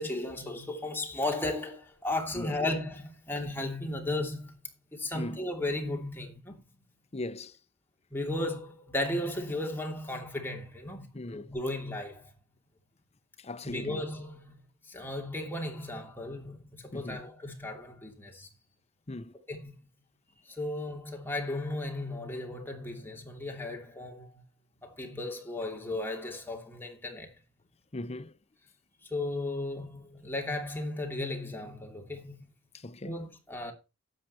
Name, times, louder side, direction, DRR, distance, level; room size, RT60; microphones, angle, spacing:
voice 1, 0.0-4.6 4.9-6.6 8.1-12.3 13.6-14.5 14.9-18.5 19.5-19.9 20.5-24.4 24.8-27.3 29.0-32.5 33.0-33.7, left 2 dB, 10° left, 2.7 m, -35 dB
voice 2, 7.1-7.6 11.1-11.5 13.4-14.0 16.9-17.2 19.1-19.3 27.9-28.3 32.7-33.3, left 2 dB, 30° left, 0.7 m, -39 dB
13.0 x 7.8 x 4.3 m
head